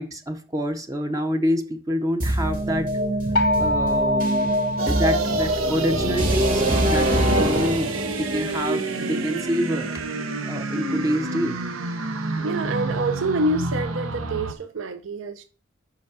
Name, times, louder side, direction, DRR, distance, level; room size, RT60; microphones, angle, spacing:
voice 1, 0.0-3.0 3.6-4.5 4.9-10.2 10.4-11.6, equal, 15° right, 0.5 m, -27 dB
sound 1, 2.2-10.1, equal, 45° right, 1.7 m, -24 dB
sound 2, 3.4-6.1, left 1 dB, 55° left, 0.5 m, -26 dB
sound 3, 4.8-14.5, right 3 dB, 90° right, 0.9 m, -29 dB
voice 2, 12.4-15.4, right 2 dB, 65° right, 0.5 m, -27 dB
5.5 x 4.8 x 4.8 m
head